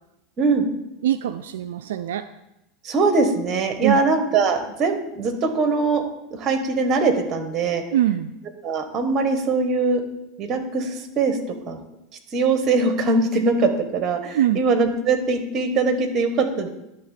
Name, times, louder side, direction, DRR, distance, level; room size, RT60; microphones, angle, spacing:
voice 1, 1.0-2.2 3.8-4.0 7.9-8.3 14.3-14.6, right 12 dB, 85° right, 9 dB, 0.3 m, -22 dB
voice 2, 2.8-6.0 6.3-7.8 8.6-10.0 10.4-11.4 11.7-11.8 12.3-16.7, right 3 dB, 35° right, 8 dB, 1.3 m, -21 dB
10.5 x 3.5 x 6.5 m, 0.91 s
hypercardioid pair, 110°, 0 cm